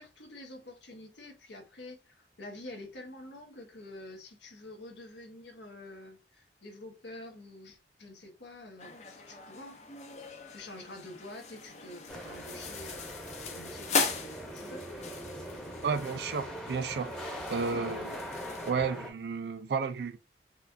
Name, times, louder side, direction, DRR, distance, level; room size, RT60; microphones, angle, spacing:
voice 1, 0.0-9.8 10.5-13.1 13.5-14.9 17.8-18.1, left 1 dB, 85° left, 1.1 m, -47 dB
sound 1, 8.8-18.7, left 4 dB, 40° left, 0.5 m, -39 dB
sound 2, 12.1-19.1, equal, 5° left, 0.7 m, -41 dB
voice 2, 15.8-17.1 17.5-18.2 18.6-20.2, right 5 dB, 65° right, 0.4 m, -32 dB
4.3 x 2.4 x 2.5 m
head